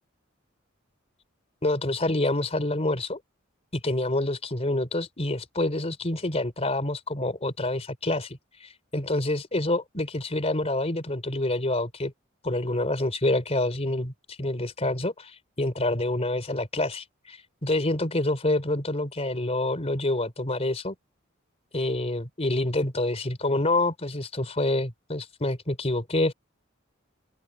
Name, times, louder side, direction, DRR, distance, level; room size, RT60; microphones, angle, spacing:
voice 1, 1.6-3.2 3.7-12.1 12.4-21.0 21.7-26.3, left 2 dB, 35° left, 3.6 m, -27 dB
open air
head